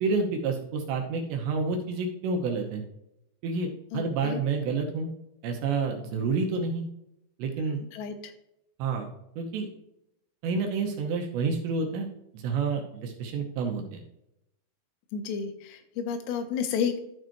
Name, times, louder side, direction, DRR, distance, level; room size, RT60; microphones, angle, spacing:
voice 1, 0.0-2.8 3.4-5.1 5.4-6.9 7.4-7.8 8.8-9.1 9.4-9.7 10.4-12.1 12.3-14.0, right 4 dB, 75° right, 2 dB, 2.8 m, -29 dB
voice 2, 3.9-4.4 7.9-8.3 15.1-17.0, left 6 dB, 90° left, 7 dB, 3.6 m, -31 dB
13.5 x 4.8 x 3.0 m, 0.81 s
omnidirectional pair, 5.7 m